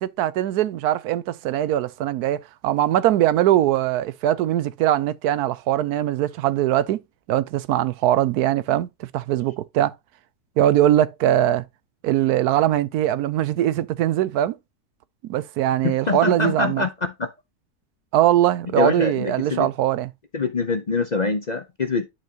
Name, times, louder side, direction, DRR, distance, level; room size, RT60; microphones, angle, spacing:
voice 1, 0.0-7.0 7.3-9.9 10.6-11.6 12.0-14.6 15.3-16.8 18.1-20.1, right 12 dB, 85° right, 1.1 m, -21 dB
voice 2, 15.8-17.3 18.8-19.7 20.3-22.1, left 4 dB, 35° left, 0.7 m, -24 dB
10.5 x 4.6 x 2.8 m
omnidirectional pair, 1.6 m